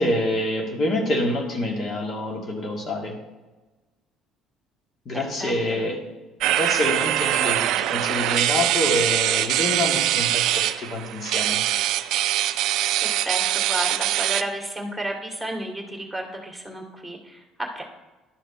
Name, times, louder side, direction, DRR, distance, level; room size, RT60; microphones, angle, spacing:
voice 1, 0.0-3.2 5.1-6.0 6.5-11.6, left 1 dB, 50° left, 0 dB, 2.2 m, -26 dB
voice 2, 5.1-5.8 13.0-17.8, right 1 dB, ahead, 1 dB, 2.2 m, -32 dB
sound 1, 6.4-14.4, right 13 dB, 70° right, 0.3 m, -23 dB
11.5 x 5.1 x 4.3 m, 1.2 s
hypercardioid pair, 70°, 0 cm